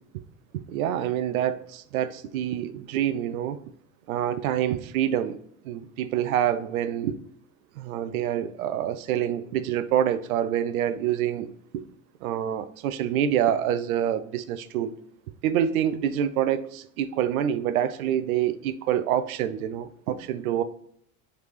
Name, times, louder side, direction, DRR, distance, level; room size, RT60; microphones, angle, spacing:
voice 1, 0.7-3.6 4.1-5.4 5.6-7.1 7.8-11.5 11.7-11.8 12.2-14.9 15.4-20.6, right 10 dB, 80° right, 0.5 m, -26 dB
3.6 x 3.2 x 3.1 m
hypercardioid pair, 90°, 42 cm